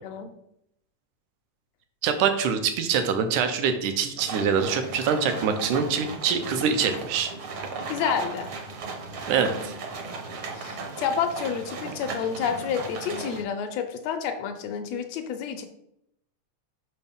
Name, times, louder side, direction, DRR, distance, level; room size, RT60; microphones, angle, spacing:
voice 1, 2.0-7.3 9.3-9.7, right 6 dB, 80° right, 8 dB, 2.2 m, -24 dB
sound 1, 4.2-13.4, right 3 dB, 60° right, 1.4 m, -36 dB
voice 2, 7.9-8.5 10.5-15.6, left 7 dB, 80° left, 6 dB, 1.5 m, -29 dB
6.8 x 5.7 x 3.5 m, 0.77 s
omnidirectional pair, 3.6 m